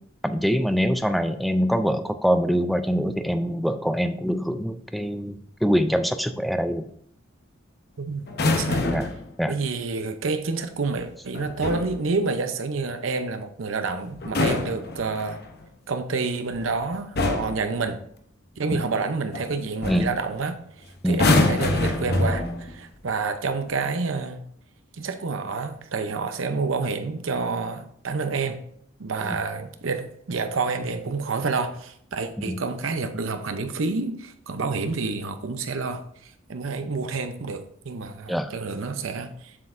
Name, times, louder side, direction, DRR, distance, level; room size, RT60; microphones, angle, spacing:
voice 1, 0.2-6.8 8.9-9.1 9.4-9.5 18.7-18.8 19.9-20.1 21.0-21.2 29.3-29.4 32.4-32.6 38.3-38.5, equal, ahead, 9 dB, 0.3 m, -24 dB
voice 2, 8.0-8.8 9.5-15.4 15.9-18.0 18.6-20.6 21.0-24.4 24.9-28.6 29.0-39.6, right 4 dB, 80° right, 9 dB, 0.7 m, -28 dB
sound 1, 8.3-9.3 11.3-12.0 14.1-15.5 16.5-16.8 17.2-17.6 19.3-19.5 19.8-20.1 21.1-22.8 23.7-23.9, left 2 dB, 50° left, 0.8 m, -24 dB
7.4 x 6.4 x 2.6 m, 0.68 s
head